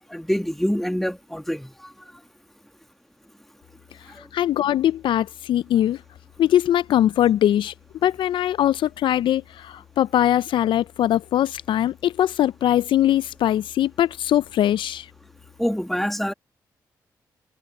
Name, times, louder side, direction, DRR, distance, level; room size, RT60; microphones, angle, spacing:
voice 1, 0.1-1.7 15.6-16.3, equal, 5° left, 2.2 m, -25 dB
voice 2, 4.3-6.0 6.4-7.7 8.0-15.1, left 12 dB, 70° left, 0.5 m, -21 dB
hypercardioid pair, 45°, 9 cm